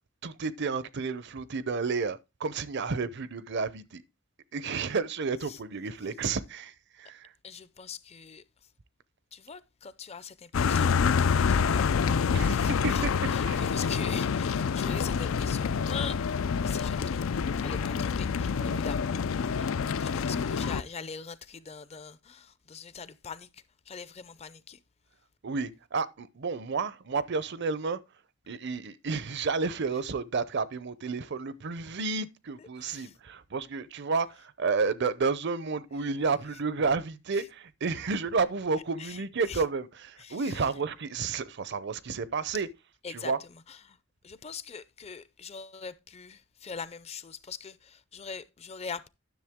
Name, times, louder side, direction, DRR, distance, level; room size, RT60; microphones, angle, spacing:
voice 1, 0.2-4.0 4.5-7.3 12.3-13.1 13.4-13.7 18.6-18.8 25.4-28.0 28.5-42.7 43.1-43.4, right 4 dB, 60° right, 0.6 m, -31 dB
voice 2, 7.4-8.4 9.3-12.0 12.5-13.0 13.3-16.2 16.6-19.2 19.5-19.7 20.0-23.5 23.9-24.8 32.6-33.1 39.0-39.6 40.2-40.6 43.0-43.3 43.7-44.0 44.2-49.1, left 6 dB, 30° left, 0.5 m, -42 dB
sound 1, 10.5-20.8, left 6 dB, 85° left, 0.4 m, -27 dB
10.5 x 6.5 x 3.6 m
head